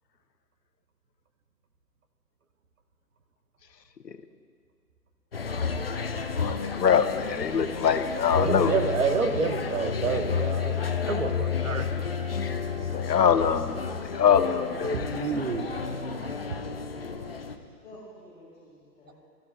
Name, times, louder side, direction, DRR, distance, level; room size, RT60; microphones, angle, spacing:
sound 1, 5.3-17.6, left 6 dB, 40° left, 0.5 m, -31 dB
voice 1, 5.9-8.7 12.3-12.4 12.9-13.8 14.1-15.1, left 7 dB, 80° left, 11 dB, 0.8 m, -24 dB
voice 2, 8.4-11.8 12.7-12.9 14.8-15.7, right 5 dB, 55° right, 6 dB, 1.1 m, -29 dB
voice 3, 15.6-19.1, left 2 dB, 10° left, -8 dB, 2.8 m, -46 dB
24.5 x 14.0 x 2.2 m, 2.1 s
figure-of-eight pair, 140°, 49 cm